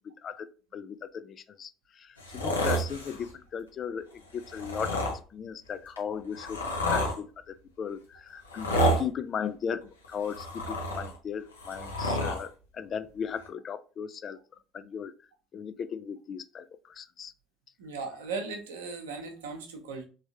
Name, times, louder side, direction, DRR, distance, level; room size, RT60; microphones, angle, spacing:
voice 1, 0.2-1.7 2.0-4.1 4.3-5.0 5.3-8.7 9.0-14.4 14.7-15.1 15.5-17.3, left 7 dB, 40° left, 0.3 m, -37 dB
Velociraptor Snarls, 2.2-3.3 4.4-5.2 6.0-7.2 8.4-9.1 10.0-11.2 11.5-12.4 13.4-13.5, equal, 85° left, 0.7 m, -29 dB
voice 2, 17.8-20.0, right 4 dB, 70° right, 0.8 m, -37 dB
3.5 x 3.2 x 2.7 m
figure-of-eight pair, 60°, 0 cm